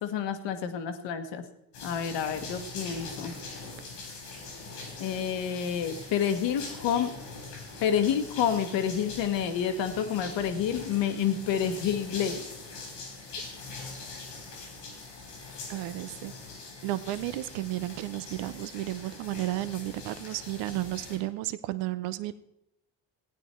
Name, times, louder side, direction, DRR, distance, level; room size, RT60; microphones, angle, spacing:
voice 1, 0.0-1.4 1.8-3.3 5.0-7.1 7.8-12.4, left 8 dB, 65° left, 8 dB, 1.5 m, -29 dB
sound 1, 1.7-21.2, left 3 dB, 90° left, 3.6 m, -43 dB
voice 2, 15.7-16.3 16.8-22.3, right 15 dB, 75° right, 13 dB, 0.8 m, -33 dB
15.5 x 9.3 x 4.5 m, 0.82 s
hypercardioid pair, 65°, 46 cm